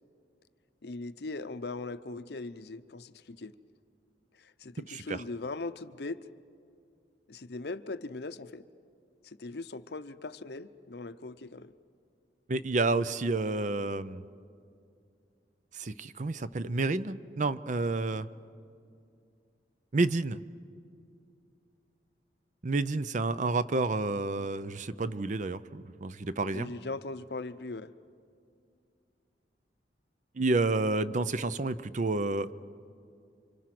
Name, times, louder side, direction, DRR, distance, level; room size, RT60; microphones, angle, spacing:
voice 1, 0.8-3.5 4.4-6.2 7.3-8.6 9.2-11.7 26.5-27.9, left 3 dB, 65° left, 12 dB, 0.7 m, -40 dB
voice 2, 4.8-5.2 12.5-14.2 15.7-18.3 19.9-20.4 22.6-26.7 30.4-32.6, right 3 dB, 45° right, 14 dB, 0.6 m, -30 dB
29.0 x 25.5 x 6.0 m, 2.4 s
head